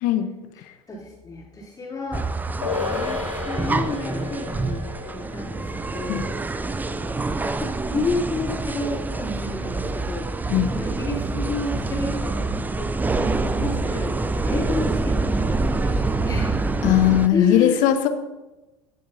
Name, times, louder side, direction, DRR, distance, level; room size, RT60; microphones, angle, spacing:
voice 1, 0.0-0.3 6.1-6.3 10.5-10.7 16.8-18.1, left 12 dB, 55° left, 9 dB, 0.9 m, -19 dB
voice 2, 0.9-2.3 2.7-3.2 3.5-6.2 6.9-7.2 7.6-12.5 12.7-16.7 17.3-17.9, left 2 dB, 20° left, -4 dB, 3.2 m, -31 dB
sound 1, 2.1-17.3, right 3 dB, 10° right, 0.4 m, -26 dB
sound 2, 2.6-9.3 9.6-9.7, left 5 dB, 85° left, 1.6 m, -35 dB
16.5 x 7.8 x 2.7 m, 1.1 s
figure-of-eight pair, 70°, 17 cm